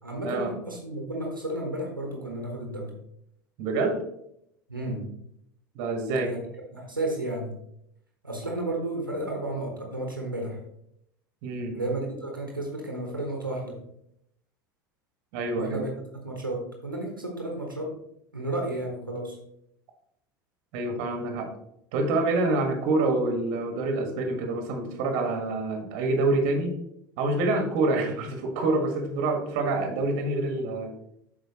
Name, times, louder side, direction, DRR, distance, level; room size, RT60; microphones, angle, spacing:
voice 1, 0.0-2.9 4.7-5.1 6.2-6.4 6.7-7.5 8.2-10.6 11.7-13.8 15.5-15.9 16.2-17.9 18.3-19.4, right 1 dB, 90° right, 0 dB, 1.3 m, -32 dB
voice 2, 3.6-4.0 5.7-6.3 11.4-11.8 15.3-15.8 20.7-21.5 21.9-26.7 27.2-30.9, right 2 dB, 55° right, 4 dB, 1.6 m, -26 dB
8.1 x 5.7 x 2.9 m, 0.74 s
figure-of-eight pair, 75°, 11 cm